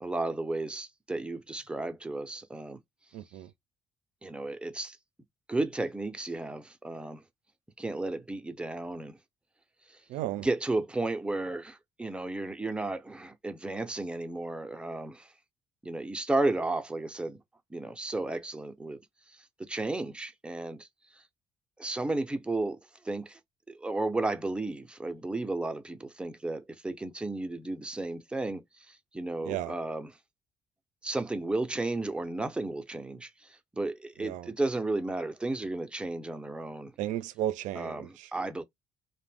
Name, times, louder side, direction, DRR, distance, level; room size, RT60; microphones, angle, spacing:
voice 1, 0.0-2.8 4.2-5.0 5.5-7.2 7.8-9.2 10.4-15.3 15.8-17.4 17.7-19.0 19.7-20.9 21.8-22.8 23.0-23.4 23.8-28.6 28.9-30.1 31.0-33.3 33.7-36.9 37.8-38.6, right 2 dB, 10° right, 0.5 m, -33 dB
voice 2, 3.1-3.5 10.1-10.5 29.4-29.7 34.2-34.5 37.0-38.3, right 13 dB, 90° right, 0.4 m, -34 dB
2.5 x 2.1 x 3.3 m
cardioid pair, 125°, 13 cm